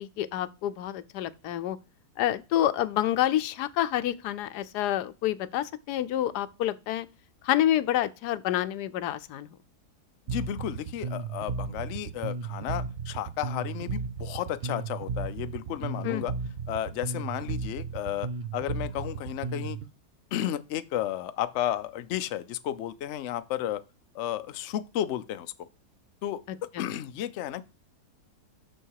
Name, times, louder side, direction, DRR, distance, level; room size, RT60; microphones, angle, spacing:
voice 1, 0.0-1.8 2.2-7.1 7.4-9.5 16.0-16.2 26.7-26.9, left 12 dB, 85° left, 1.2 m, -28 dB
voice 2, 10.3-16.3 16.7-18.3 18.5-19.8 20.3-23.8 24.1-25.7 26.2-26.4 26.8-27.6, left 11 dB, 65° left, 0.7 m, -33 dB
Bass guitar, 10.3-19.9, right 5 dB, 65° right, 0.6 m, -34 dB
6.4 x 6.3 x 4.7 m
omnidirectional pair, 1.7 m